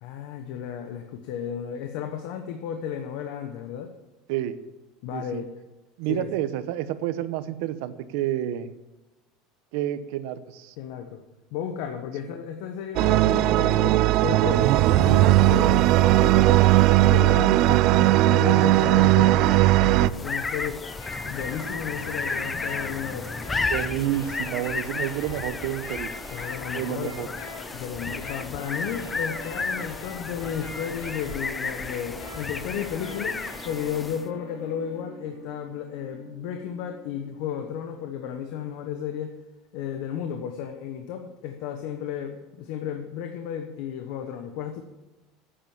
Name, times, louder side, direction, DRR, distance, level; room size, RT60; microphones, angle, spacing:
voice 1, 0.0-3.9 5.0-5.5 6.1-6.3 10.8-11.2 11.5-20.8 21.2-23.3 26.3-27.3 27.7-39.4 39.7-44.8, left 8 dB, 60° left, 6 dB, 1.1 m, -33 dB
voice 2, 5.1-5.4 6.0-8.7 9.7-10.7 23.7-26.1 26.7-27.3, right 12 dB, 65° right, 12 dB, 0.9 m, -29 dB
sound 1, 13.0-20.1, right 16 dB, 45° right, 0.4 m, -18 dB
sound 2, 20.0-34.3, left 3 dB, 10° left, 0.5 m, -33 dB
sound 3, 20.8-37.7, left 2 dB, 80° left, 5.5 m, -43 dB
10.5 x 8.9 x 7.2 m, 1.0 s
cardioid pair, 170°, 0 cm